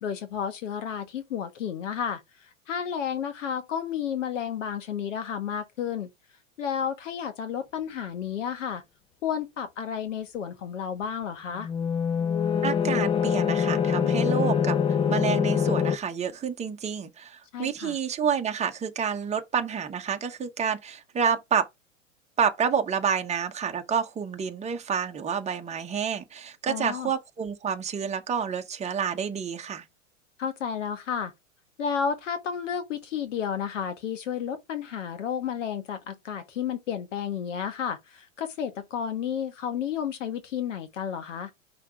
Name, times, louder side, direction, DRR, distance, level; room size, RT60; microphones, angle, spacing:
voice 1, 0.0-2.2 2.7-6.1 6.6-8.8 9.2-11.7 17.5-18.0 26.7-27.1 30.4-31.3 31.8-41.5, left 8 dB, 65° left, 1.7 m, -31 dB
sound 1, 11.6-16.0, left 7 dB, 15° left, 0.4 m, -24 dB
voice 2, 12.6-21.7 22.4-29.8, right 7 dB, 15° right, 1.1 m, -29 dB
5.7 x 3.7 x 4.6 m
hypercardioid pair, 95°, 39 cm